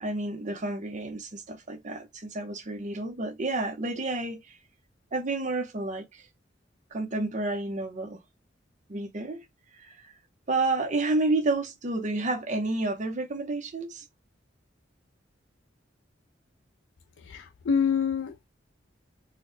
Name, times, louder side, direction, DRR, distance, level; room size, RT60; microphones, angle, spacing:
voice 1, 0.0-4.6 5.1-6.2 6.9-8.2 8.9-9.4 10.0-10.1 10.5-14.0, right 2 dB, 40° right, 0.7 m, -30 dB
voice 2, 17.3-18.4, left 6 dB, 75° left, 0.4 m, -26 dB
4.0 x 2.1 x 2.5 m
head